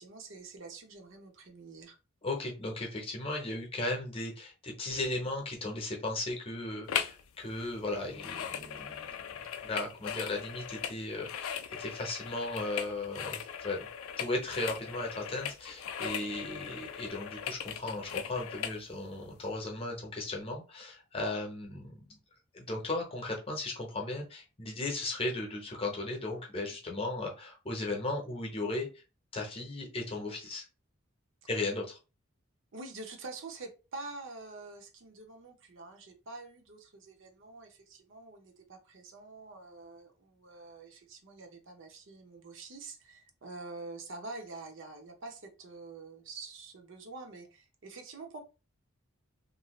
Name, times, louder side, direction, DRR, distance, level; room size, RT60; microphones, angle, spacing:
voice 1, 0.0-2.0 32.7-48.4, right 3 dB, 60° right, 0.6 m, -46 dB
voice 2, 2.2-9.4 9.6-13.9 14.2-22.2 22.5-29.0 29.3-30.6 31.5-32.0, left 2 dB, 25° left, 0.8 m, -36 dB
sound 1, 6.9-7.2 7.5-18.8 19.3-19.4, left 8 dB, 80° left, 0.4 m, -39 dB
2.6 x 2.4 x 3.0 m
head